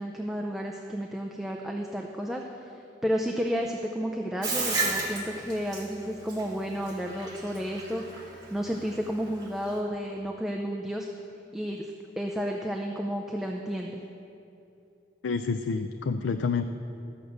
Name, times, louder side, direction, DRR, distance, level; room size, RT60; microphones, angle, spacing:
voice 1, 0.0-8.0 8.5-11.1 11.5-11.9 12.2-14.0, equal, ahead, 0 dB, 0.5 m, -32 dB
Bathtub (filling or washing), 4.4-9.8, right 3 dB, 20° right, 2.1 m, -32 dB
voice 2, 15.2-16.6, left 5 dB, 85° left, 9 dB, 0.4 m, -28 dB
13.5 x 6.6 x 7.9 m, 2.8 s
head